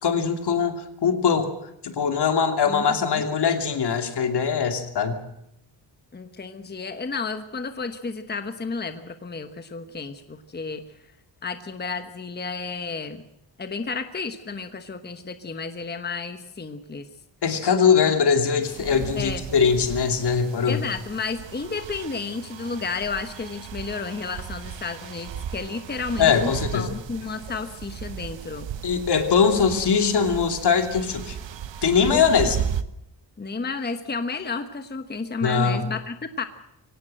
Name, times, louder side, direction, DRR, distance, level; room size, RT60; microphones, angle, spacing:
voice 1, 0.0-1.5 1.8-5.2 17.4-20.8 26.2-26.9 28.8-31.4 31.8-32.6 35.4-35.8, left 6 dB, 65° left, 6 dB, 2.9 m, -21 dB
voice 2, 2.7-3.2 6.1-10.8 11.4-13.2 13.6-17.1 19.2-19.4 20.7-28.7 32.1-32.4 33.4-36.4, left 4 dB, 25° left, 8 dB, 1.2 m, -32 dB
sound 1, 18.6-32.8, right 9 dB, 80° right, 1.2 m, -36 dB
24.0 x 18.0 x 7.7 m, 0.80 s
wide cardioid pair, 145°, 44 cm